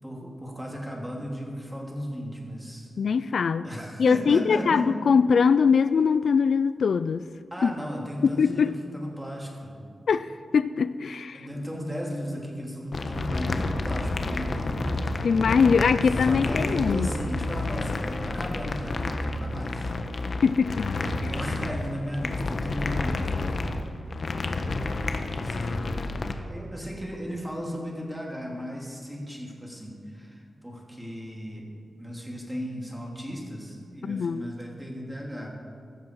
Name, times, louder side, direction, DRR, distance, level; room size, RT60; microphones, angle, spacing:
voice 1, 0.0-2.9 3.6-4.9 7.5-9.8 11.3-14.7 16.3-19.9 20.9-23.6 24.3-24.8 25.3-25.7 26.5-31.7 32.0-35.5, equal, 5° right, -1 dB, 3.0 m, -35 dB
voice 2, 3.0-3.6 4.0-7.3 7.6-7.7 8.4-8.7 10.1-10.3 10.5-11.5 15.2-17.1 20.4-20.9 34.0-34.5, left 6 dB, 70° left, 14 dB, 0.3 m, -22 dB
sound 1, 12.9-26.3, left 2 dB, 50° left, 1.1 m, -30 dB
15.5 x 14.0 x 4.7 m, 2.4 s
wide cardioid pair, 115°, 0 cm